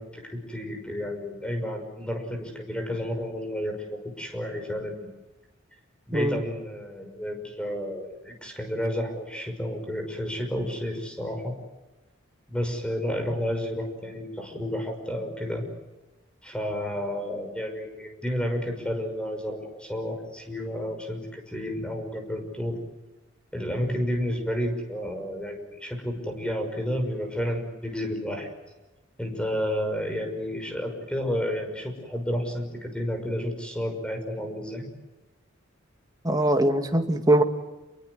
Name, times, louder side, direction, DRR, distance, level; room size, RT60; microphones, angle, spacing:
voice 1, 0.0-4.9 6.1-11.5 12.5-15.6 16.4-22.8 23.5-28.5 29.2-34.9, equal, 5° left, 4 dB, 6.1 m, -31 dB
voice 2, 36.2-37.4, right 1 dB, 20° right, 5 dB, 2.2 m, -21 dB
28.0 x 23.0 x 8.0 m, 1.1 s
head